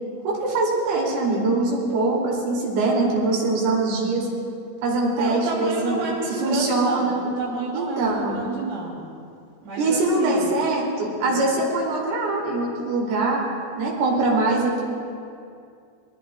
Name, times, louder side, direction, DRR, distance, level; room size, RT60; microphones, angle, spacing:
voice 1, 0.3-4.3 4.8-6.0 6.4-7.2 7.7-8.5 9.8-13.5 13.8-14.8, right 2 dB, 90° right, -3 dB, 5.6 m, -23 dB
voice 2, 5.2-9.0 9.6-10.5 11.2-11.4, right 2 dB, 75° right, -5 dB, 5.9 m, -30 dB
24.0 x 20.5 x 2.5 m, 2.4 s
omnidirectional pair, 5.6 m